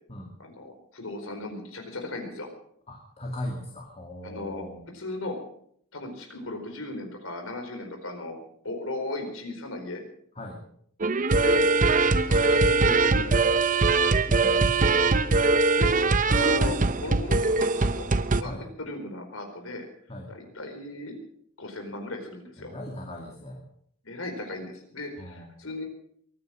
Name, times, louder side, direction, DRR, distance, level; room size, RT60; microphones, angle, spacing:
voice 1, 0.4-2.5 4.2-4.6 4.9-5.4 5.9-8.4 8.6-10.0 11.4-11.7 12.3-13.4 15.8-18.1 18.4-19.9 20.3-21.1 21.6-22.7 24.0-25.8, left 2 dB, 70° left, 4 dB, 4.5 m, -36 dB
voice 2, 2.9-4.8 10.4-10.6 14.4-15.0 18.4-18.7 20.1-20.3 22.6-23.6 25.2-25.5, left 1 dB, 30° left, 0 dB, 2.4 m, -38 dB
sound 1, 11.0-18.4, right 3 dB, 40° right, 0.8 m, -22 dB
23.0 x 9.8 x 6.4 m, 0.66 s
head